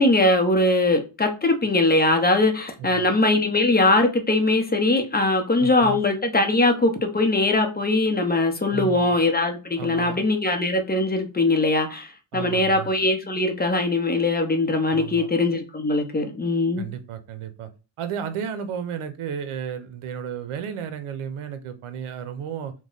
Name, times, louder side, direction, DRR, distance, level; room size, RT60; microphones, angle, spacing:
voice 1, 0.0-16.9, left 2 dB, 20° left, 0.7 m, -21 dB
voice 2, 2.8-3.1 5.6-6.0 8.7-9.2 9.8-10.2 12.3-12.9 14.9-15.3 16.8-17.7 18.0-22.7, right 8 dB, 80° right, 0.7 m, -33 dB
3.1 x 2.2 x 3.8 m
cardioid pair, 95°, 50 cm